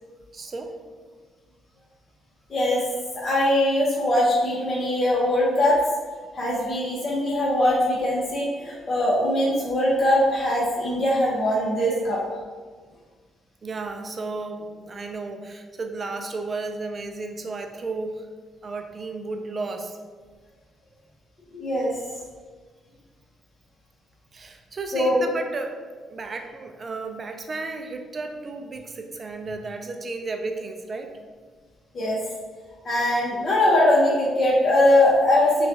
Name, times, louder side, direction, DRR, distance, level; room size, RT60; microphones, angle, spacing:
voice 1, 0.3-0.8 13.6-18.3 18.6-20.0 24.3-25.8 26.1-31.1, right 3 dB, 40° right, 5 dB, 0.4 m, -33 dB
voice 2, 2.5-2.9 3.1-5.8 6.3-12.2 21.5-21.9 24.9-25.2 31.9-32.2 32.8-35.7, left 1 dB, 40° left, -6 dB, 1.0 m, -21 dB
5.3 x 2.3 x 2.7 m, 1.5 s
cardioid pair, 90°, 0 cm